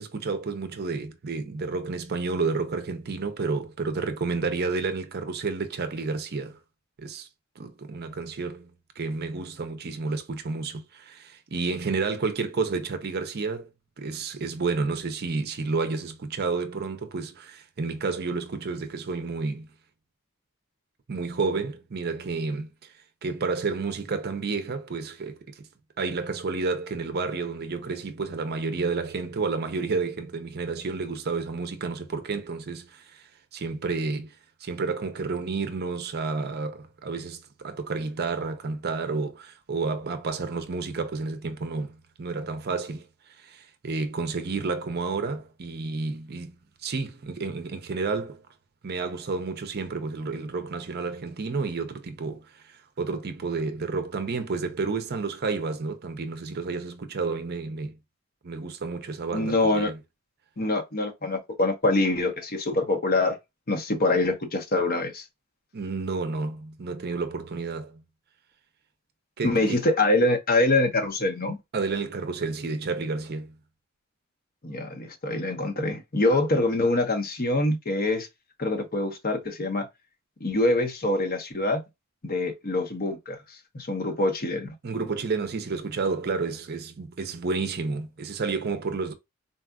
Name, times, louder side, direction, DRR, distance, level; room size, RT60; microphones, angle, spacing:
voice 1, 0.0-6.6 7.0-7.3 7.6-8.7 9.0-13.7 14.0-19.7 21.1-22.9 23.2-25.7 26.0-34.4 34.6-43.1 43.4-46.6 46.8-48.4 48.8-58.0 58.4-60.0 65.7-68.0 69.4-69.8 71.7-73.5 84.8-89.1, right 4 dB, 50° right, 0.6 m, -30 dB
voice 2, 59.3-59.9 60.6-63.3 63.7-65.2 69.4-71.6 74.6-78.3 78.6-79.9 80.4-81.8 82.2-84.7, left 2 dB, 45° left, 0.9 m, -25 dB
4.0 x 2.4 x 2.2 m
head